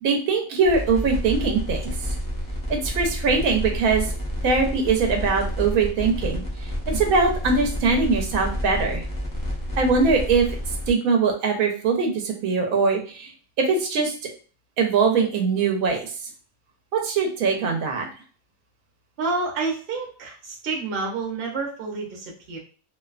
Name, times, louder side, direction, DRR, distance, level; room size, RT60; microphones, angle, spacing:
voice 1, 0.0-1.9 2.7-4.1 4.4-6.4 6.9-9.0 9.8-10.5 10.9-13.3 13.6-14.1 14.8-16.1 16.9-18.1, right 4 dB, 90° right, 2 dB, 1.1 m, -22 dB
sound 1, 0.6-10.9, equal, 25° left, 0.4 m, -29 dB
voice 2, 19.2-22.6, right 3 dB, 50° right, -1 dB, 0.8 m, -29 dB
2.6 x 2.2 x 2.3 m, 0.40 s
omnidirectional pair, 1.4 m